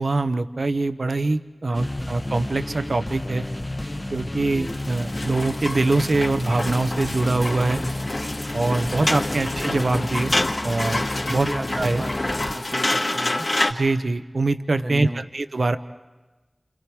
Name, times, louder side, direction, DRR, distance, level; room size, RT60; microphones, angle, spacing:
voice 1, 0.0-3.4 4.1-7.8 8.5-10.3 10.6-11.0 11.3-11.5 11.8-12.0 13.7-15.8, right 2 dB, 80° right, 10 dB, 0.7 m, -23 dB
sound 1, 1.7-12.5, left 1 dB, 30° left, 0.8 m, -31 dB
voice 2, 1.7-2.1 8.9-9.4 11.3-13.6 14.8-15.3, right 1 dB, 40° right, 9 dB, 0.9 m, -35 dB
sound 2, 4.6-13.7, left 2 dB, 60° left, 1.7 m, -28 dB
28.5 x 28.0 x 4.7 m, 1.2 s
wide cardioid pair, 50°, 0 cm